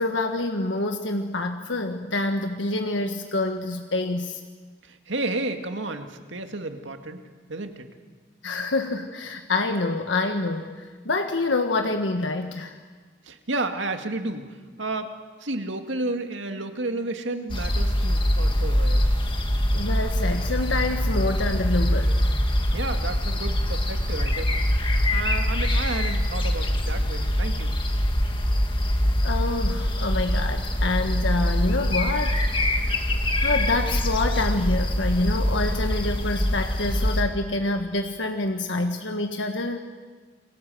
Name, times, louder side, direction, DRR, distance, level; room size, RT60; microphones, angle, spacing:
voice 1, 0.0-4.4 8.4-12.8 19.7-22.1 29.2-32.9 33.4-39.8, left 2 dB, 80° left, 5 dB, 1.5 m, -27 dB
voice 2, 4.8-7.2 7.5-7.9 13.2-15.1 15.4-19.1 22.7-24.8 25.1-27.7, right 2 dB, 85° right, 6 dB, 2.2 m, -32 dB
sound 1, 17.5-37.2, left 1 dB, 30° left, 2.2 m, -24 dB
29.5 x 23.0 x 7.8 m, 1.4 s
head